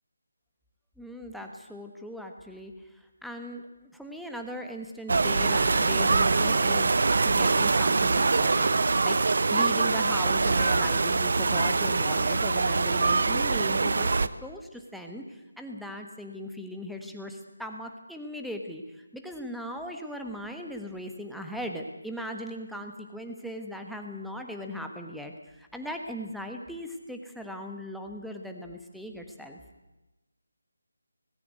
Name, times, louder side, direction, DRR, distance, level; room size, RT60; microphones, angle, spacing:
voice 1, 1.0-14.1 14.4-29.6, equal, ahead, 3 dB, 1.4 m, -38 dB
sound 1, 5.1-14.3, right 3 dB, 55° right, 0.8 m, -24 dB
19.0 x 16.0 x 9.4 m, 1.1 s
figure-of-eight pair, 155°, 0 cm